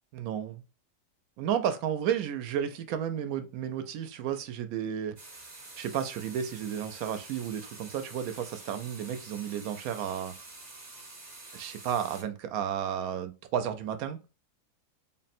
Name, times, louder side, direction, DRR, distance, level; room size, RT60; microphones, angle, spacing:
voice 1, 0.1-0.6 1.4-5.2 5.8-10.3 11.5-14.2, right 9 dB, 70° right, 0.9 m, -32 dB
sound 1, 5.2-12.2, right 2 dB, 40° right, 0.6 m, -48 dB
3.8 x 2.2 x 4.1 m
omnidirectional pair, 1.7 m